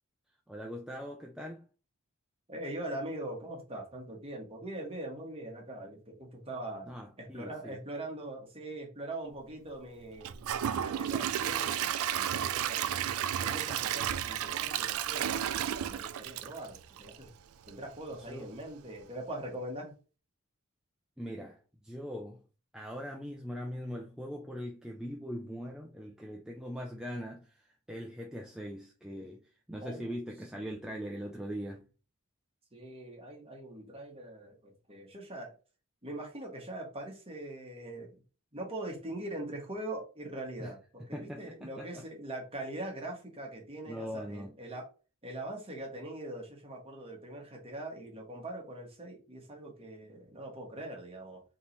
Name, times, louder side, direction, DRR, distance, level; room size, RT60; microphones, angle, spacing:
voice 1, 0.5-1.7 6.8-7.8 18.2-18.5 21.2-22.4 22.7-31.9 40.6-40.7 41.1-42.0 43.9-44.6, equal, 5° right, 0.4 m, -41 dB
voice 2, 2.5-6.9 7.2-10.3 10.7-13.1 13.4-17.3 17.7-19.9 29.8-30.2 30.6-30.8 32.7-35.5 36.0-38.2 38.5-44.9 45.2-51.4, right 1 dB, 25° right, 1.3 m, -42 dB
Gurgling / Toilet flush / Trickle dribble, 10.2-17.3 17.7-17.8 18.3-18.4, right 10 dB, 70° right, 0.4 m, -32 dB
3.7 x 2.9 x 3.9 m
head